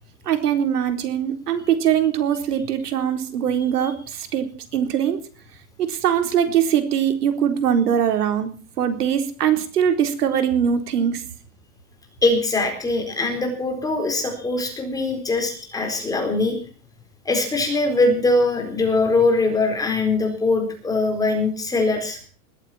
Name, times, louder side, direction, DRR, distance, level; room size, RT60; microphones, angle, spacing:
voice 1, 0.3-5.2 5.8-8.5 8.8-11.2, right 9 dB, 90° right, 7 dB, 4.1 m, -22 dB
voice 2, 12.2-16.6 17.2-22.2, left 2 dB, 10° left, 3 dB, 4.3 m, -22 dB
20.5 x 14.5 x 4.4 m, 0.41 s
supercardioid pair, 165°, 45 cm